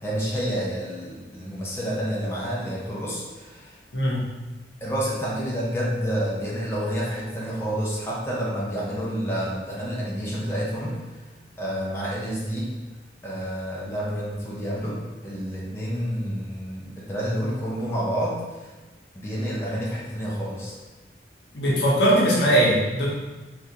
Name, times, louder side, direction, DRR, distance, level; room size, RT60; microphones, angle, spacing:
voice 1, 0.0-3.7 4.8-11.0 11.6-12.7 13.2-18.4 19.2-20.8, equal, 15° left, -6 dB, 0.6 m, -29 dB
voice 2, 21.5-23.1, right 1 dB, 80° left, -5 dB, 0.9 m, -20 dB
3.5 x 2.5 x 2.8 m, 1.2 s
head